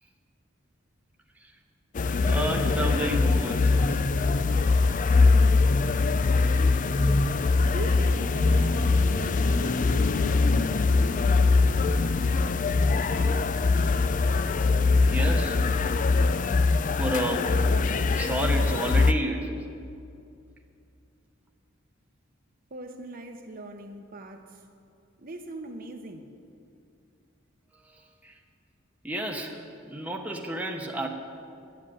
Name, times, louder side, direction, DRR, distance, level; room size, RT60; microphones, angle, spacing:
sound 1, 1.9-19.1, left 3 dB, 40° left, 0.4 m, -22 dB
voice 1, 2.2-3.9 15.0-15.6 17.0-17.5 18.1-19.6 27.7-28.3 29.0-31.1, right 1 dB, 5° right, 1.0 m, -31 dB
voice 2, 6.9-7.3 7.7-10.2 22.7-24.6 25.2-26.3, right 2 dB, 45° right, 0.9 m, -40 dB
11.5 x 7.8 x 9.9 m
head